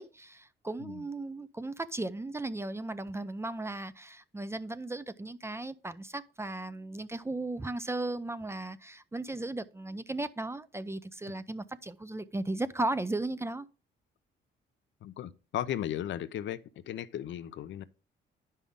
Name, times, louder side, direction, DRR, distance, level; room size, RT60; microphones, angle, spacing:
voice 1, 0.0-13.7, right 2 dB, 15° right, 0.5 m, -36 dB
voice 2, 15.0-16.6 16.9-17.8, left 11 dB, 70° left, 0.6 m, -36 dB
9.9 x 5.5 x 3.6 m
cardioid pair, 90°, 20 cm